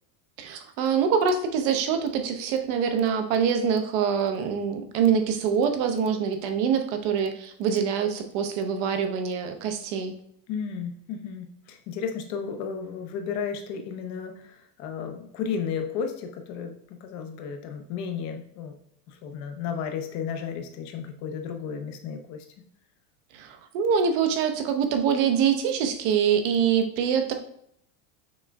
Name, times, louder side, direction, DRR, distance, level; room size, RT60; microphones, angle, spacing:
voice 1, 0.4-10.1 23.3-27.3, right 7 dB, 55° right, 6 dB, 0.7 m, -25 dB
voice 2, 10.5-18.8 19.1-22.5, left 6 dB, 35° left, 6 dB, 0.6 m, -33 dB
6.1 x 3.6 x 2.3 m, 0.70 s
cardioid pair, 170°, 45 cm